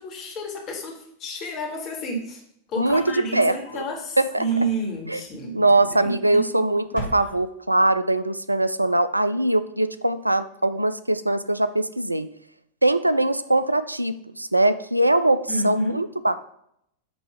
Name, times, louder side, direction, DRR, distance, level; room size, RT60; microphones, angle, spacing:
voice 1, 0.0-2.4 2.7-6.5 15.5-16.0, right 1 dB, 35° left, 0 dB, 1.8 m, -30 dB
sound 1, 2.7-3.9 4.4-5.1 6.0-6.5 6.8-7.8, equal, 70° left, 1.4 m, -39 dB
voice 2, 2.8-3.8 4.2-4.5 5.1-5.2 5.5-12.3 12.8-16.4, right 2 dB, 85° right, 13 dB, 0.3 m, -22 dB
7.8 x 3.0 x 5.0 m, 0.73 s
figure-of-eight pair, 90°, 0 cm